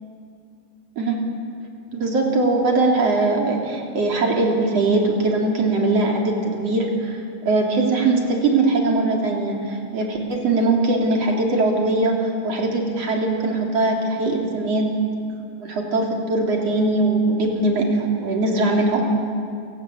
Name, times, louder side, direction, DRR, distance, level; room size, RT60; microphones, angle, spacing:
voice 1, 1.9-14.9 15.6-19.0, right 2 dB, 50° right, 0 dB, 4.2 m, -21 dB
28.5 x 17.0 x 8.6 m, 2.5 s
omnidirectional pair, 3.7 m